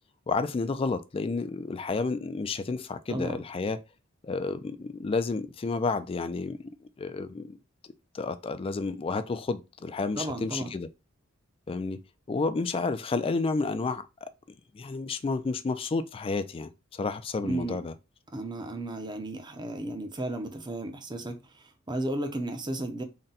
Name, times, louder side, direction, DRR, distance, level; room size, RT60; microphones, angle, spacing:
voice 1, 0.3-3.8 4.2-6.7 7.0-7.6 8.1-10.9 11.7-12.0 12.3-14.3 14.7-17.9, left 3 dB, 25° left, 0.3 m, -31 dB
voice 2, 10.2-10.7 17.4-17.8 18.3-21.4 21.9-23.0, right 1 dB, 20° right, 0.6 m, -33 dB
3.8 x 2.2 x 4.0 m
head